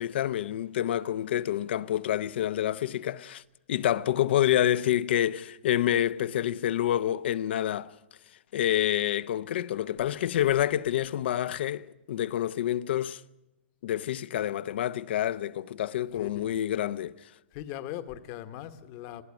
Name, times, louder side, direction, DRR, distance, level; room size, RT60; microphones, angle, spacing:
voice 1, 0.0-3.4 3.7-7.9 8.5-13.2 13.8-17.1, left 11 dB, 60° left, 0.8 m, -28 dB
voice 2, 16.1-16.5 17.5-19.2, left 12 dB, 35° left, 1.2 m, -40 dB
20.5 x 15.0 x 9.7 m
hypercardioid pair, 160°, 7 cm